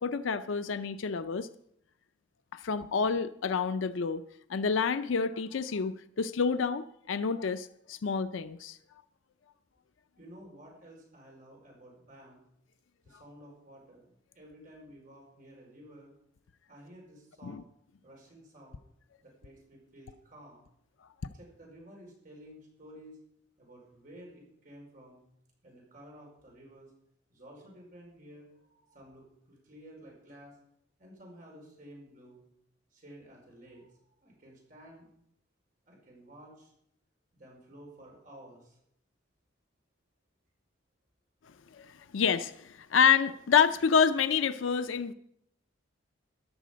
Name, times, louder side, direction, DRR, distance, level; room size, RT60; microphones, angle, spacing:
voice 1, 0.0-1.5 2.5-4.2 4.5-8.8 17.4-17.6 41.7-45.1, left 6 dB, 85° left, 12 dB, 0.5 m, -28 dB
voice 2, 10.2-12.4 13.0-16.1 16.7-17.6 18.0-18.8 19.2-20.7 21.3-23.2 23.6-25.2 25.6-26.9 27.3-30.6 31.0-32.4 32.9-35.1 35.8-36.7 37.3-38.8, equal, 45° right, -1 dB, 5.0 m, -53 dB
14.0 x 11.0 x 5.2 m, 0.74 s
head